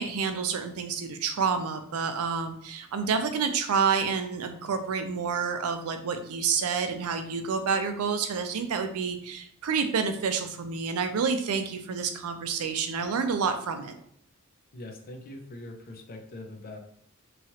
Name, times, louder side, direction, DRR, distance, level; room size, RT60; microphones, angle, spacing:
voice 1, 0.0-13.9, right 5 dB, 85° right, 7 dB, 0.4 m, -29 dB
voice 2, 14.7-16.8, left 1 dB, 45° left, 3 dB, 0.5 m, -42 dB
3.0 x 2.3 x 2.8 m, 0.66 s
head